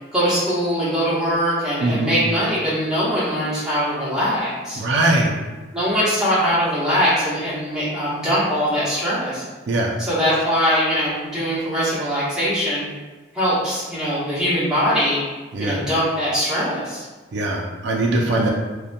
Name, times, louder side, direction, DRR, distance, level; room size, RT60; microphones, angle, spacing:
voice 1, 0.1-4.8 5.7-9.4 10.0-12.9 13.3-15.2 15.6-17.0, equal, 5° right, -11 dB, 0.9 m, -21 dB
voice 2, 1.8-2.1 4.7-5.3 9.7-9.9 15.5-15.8 17.3-18.5, right 2 dB, 70° right, -1 dB, 0.3 m, -21 dB
2.7 x 2.1 x 2.5 m, 1.3 s
head